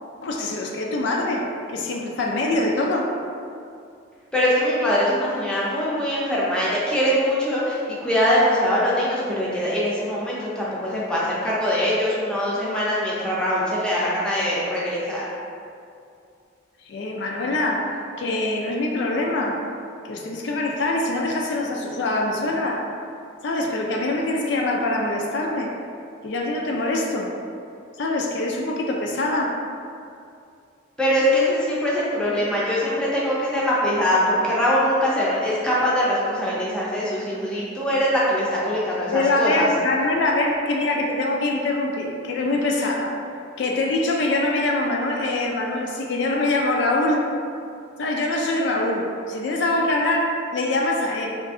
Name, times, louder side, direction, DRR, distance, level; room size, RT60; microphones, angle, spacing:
voice 1, 0.2-3.2 16.8-19.6 20.0-22.9 23.4-25.7 26.2-27.3 28.0-29.6 39.1-43.2 43.6-47.2 48.0-51.4, left 2 dB, 60° left, 0 dB, 0.3 m, -24 dB
voice 2, 4.3-15.3 31.0-39.7, equal, 5° left, -7 dB, 0.5 m, -22 dB
3.1 x 2.5 x 3.5 m, 2.4 s
head